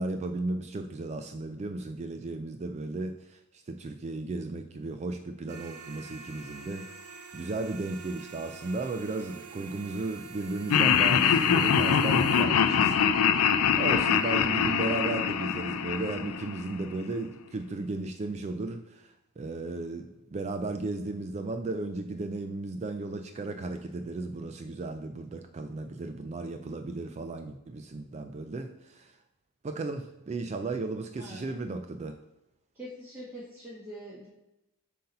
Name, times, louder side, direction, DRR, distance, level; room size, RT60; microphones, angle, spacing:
voice 1, 0.0-13.4 13.8-29.2 29.6-32.2, right 2 dB, 30° right, 7 dB, 0.3 m, -35 dB
sound 1, 5.5-12.4, right 4 dB, 85° right, 0.8 m, -45 dB
Laughter, 10.7-16.9, left 7 dB, 80° left, 0.4 m, -24 dB
voice 2, 31.2-31.5 32.7-34.3, equal, 10° right, -10 dB, 1.5 m, -44 dB
7.6 x 2.8 x 5.4 m, 0.93 s
head